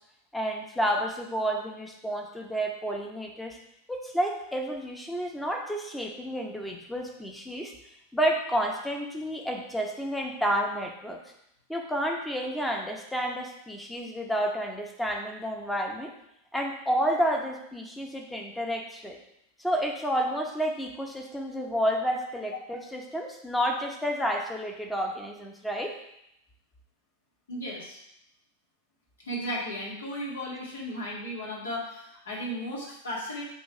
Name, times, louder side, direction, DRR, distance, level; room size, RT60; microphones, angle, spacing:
voice 1, 0.3-3.6 3.9-7.7 8.1-11.2 11.7-16.1 16.5-19.2 19.6-26.0, equal, 5° left, 1 dB, 0.9 m, -30 dB
voice 2, 27.5-28.0 29.2-33.4, equal, 65° left, -4 dB, 1.9 m, -35 dB
6.1 x 3.4 x 5.1 m, 0.78 s
figure-of-eight pair, 90°, 0 cm